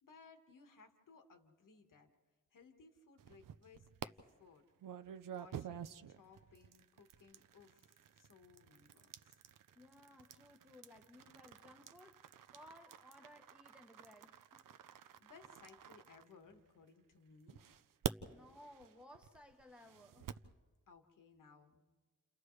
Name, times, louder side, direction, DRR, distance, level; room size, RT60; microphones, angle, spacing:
voice 1, 0.0-2.1 2.5-4.6 5.2-9.3 15.2-17.6 20.9-21.8, left 4 dB, 70° left, 1.6 m, -62 dB
sound 1, 3.2-4.1 4.8-16.8 17.5-20.5, right 9 dB, 80° right, 0.6 m, -49 dB
voice 2, 9.7-14.6 18.3-20.4, left 1 dB, 5° right, 0.9 m, -60 dB
30.0 x 29.5 x 3.2 m
wide cardioid pair, 170°, 32 cm